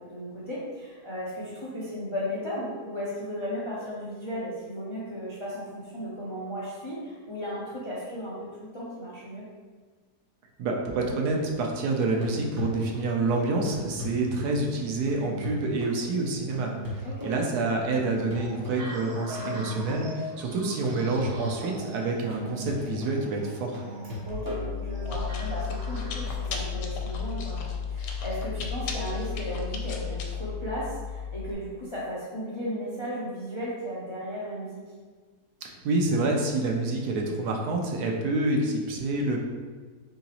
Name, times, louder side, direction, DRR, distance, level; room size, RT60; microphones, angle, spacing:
voice 1, 0.0-9.5 17.0-17.3 24.3-34.8, equal, 40° left, -7 dB, 0.4 m, -35 dB
voice 2, 10.6-23.8 35.6-39.4, right 2 dB, 75° right, 0 dB, 1.1 m, -28 dB
sound 1, 12.1-25.4 29.0-29.1, right 1 dB, 25° right, 0.5 m, -38 dB
sound 2, 18.3-26.5, left 1 dB, 55° right, 0.8 m, -43 dB
Chewing mastication, 24.3-31.5, left 6 dB, 80° left, 1.2 m, -33 dB
3.9 x 3.8 x 2.9 m, 1.5 s
omnidirectional pair, 1.8 m